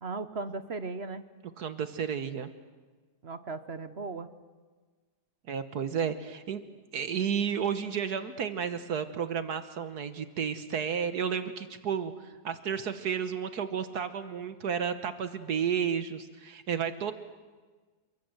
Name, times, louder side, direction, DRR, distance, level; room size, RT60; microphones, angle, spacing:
voice 1, 0.0-1.3 3.2-4.3, right 3 dB, 45° right, 12 dB, 1.2 m, -37 dB
voice 2, 1.6-2.5 5.5-6.6 6.9-17.1, right 7 dB, 70° right, 10 dB, 1.6 m, -32 dB
29.0 x 23.5 x 7.9 m, 1.4 s
omnidirectional pair, 1.8 m